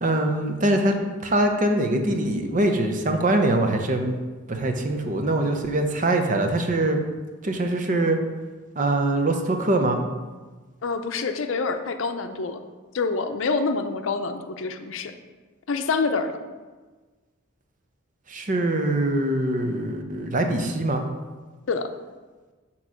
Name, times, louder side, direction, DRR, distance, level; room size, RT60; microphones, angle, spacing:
voice 1, 0.0-0.9 1.2-4.2 4.5-7.0 7.4-8.2 8.8-10.0 18.3-21.0, right 1 dB, 40° right, 4 dB, 0.7 m, -23 dB
voice 2, 10.8-12.6 12.9-15.1 15.7-16.3 21.7-21.9, left 4 dB, 75° left, 7 dB, 0.5 m, -26 dB
7.9 x 3.0 x 6.2 m, 1.3 s
head